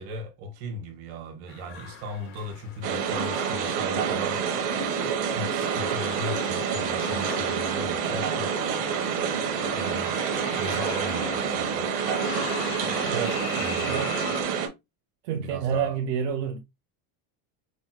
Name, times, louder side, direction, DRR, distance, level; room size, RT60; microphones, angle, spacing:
voice 1, 0.0-4.8 5.3-9.0 9.4-10.2 10.5-12.0 13.5-14.1 15.3-16.0, right 1 dB, 60° right, 1.5 m, -37 dB
sound 1, 1.5-14.4, left 7 dB, 30° left, 0.4 m, -40 dB
sound 2, 2.8-14.7, right 7 dB, 45° right, 0.9 m, -28 dB
voice 2, 13.1-13.4 13.8-14.2 15.2-16.6, right 7 dB, 80° right, 0.8 m, -29 dB
5.2 x 2.1 x 3.0 m
cardioid pair, 160°, 45 cm